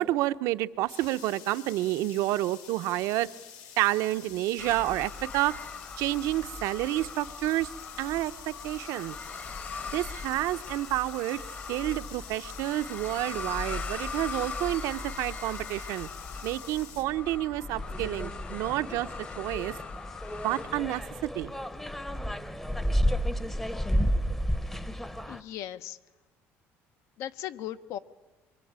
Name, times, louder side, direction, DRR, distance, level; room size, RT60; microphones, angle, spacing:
voice 1, 0.0-3.3 3.8-5.5 6.0-7.7 8.0-9.1 9.9-11.4 11.7-16.1 16.4-19.1 19.4-19.7 20.4-21.5, right 16 dB, 80° right, 11 dB, 0.8 m, -29 dB
sound 1, 0.9-17.0, left 8 dB, 85° left, 3.2 m, -48 dB
sound 2, 4.6-20.9, left 4 dB, 30° left, 1.1 m, -40 dB
sound 3, 17.7-25.4, equal, 5° left, 0.8 m, -31 dB
voice 2, 25.3-26.0 27.2-28.0, left 12 dB, 70° left, 12 dB, 1.0 m, -37 dB
24.5 x 23.5 x 8.8 m, 1.2 s
cardioid pair, 160°, 5 cm